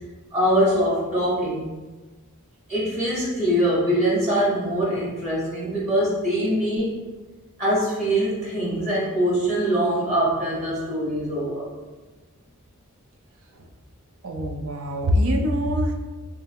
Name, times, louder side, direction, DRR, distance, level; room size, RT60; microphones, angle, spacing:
voice 1, 0.3-1.7 2.7-7.0 7.6-11.7, equal, 30° right, -6 dB, 1.0 m, -23 dB
voice 2, 14.2-15.9, equal, 65° right, 3 dB, 0.5 m, -23 dB
3.4 x 3.2 x 3.5 m, 1.2 s
head